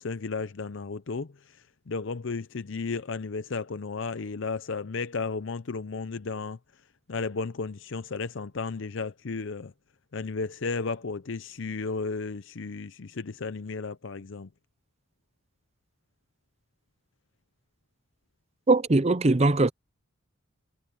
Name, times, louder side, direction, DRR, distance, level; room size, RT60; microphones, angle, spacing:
voice 1, 0.0-1.3 1.9-6.6 7.1-9.7 10.1-14.5, left 4 dB, 60° left, 0.6 m, -33 dB
voice 2, 18.7-19.7, right 2 dB, 30° right, 0.6 m, -21 dB
head